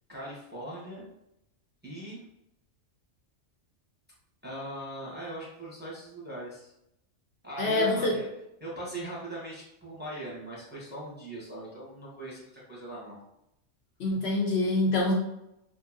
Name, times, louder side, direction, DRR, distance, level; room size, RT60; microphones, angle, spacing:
voice 1, 0.1-1.0 1.8-2.2 4.4-6.7 7.4-8.3 8.6-13.2, right 1 dB, 10° right, -7 dB, 0.7 m, -40 dB
voice 2, 7.6-8.1 14.0-15.1, left 2 dB, 65° left, -2 dB, 0.8 m, -25 dB
2.8 x 2.5 x 2.4 m, 0.84 s
omnidirectional pair, 1.3 m